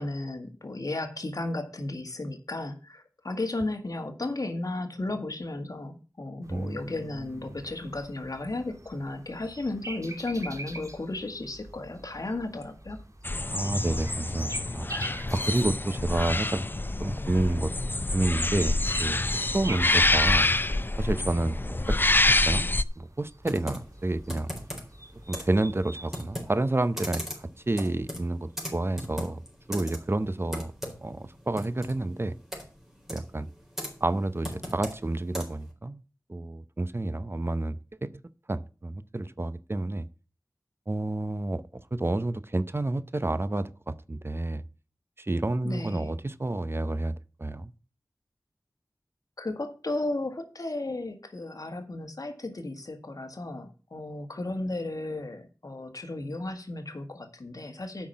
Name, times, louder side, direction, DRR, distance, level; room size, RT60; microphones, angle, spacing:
voice 1, 0.0-13.0 45.6-46.1 49.4-58.1, left 2 dB, 60° left, 1.8 m, -34 dB
sound 1, 6.4-26.2, right 1 dB, 55° right, 2.6 m, -45 dB
voice 2, 6.5-7.6 13.5-14.9 15.3-16.6 17.0-17.7 18.1-20.5 21.0-22.0 22.3-22.7 23.0-24.5 25.3-29.4 29.7-30.7 31.0-32.4 33.1-33.5 34.0-36.0 36.3-38.1 38.5-40.1 40.9-41.6 41.9-44.6 45.2-47.1 47.4-47.7, right 2 dB, 35° right, 0.7 m, -29 dB
sound 2, 13.2-22.8, left 2 dB, 30° left, 0.5 m, -26 dB
Computer keyboard, 23.4-35.7, equal, 5° right, 4.1 m, -40 dB
8.7 x 5.8 x 7.3 m
wide cardioid pair, 45°, 7 cm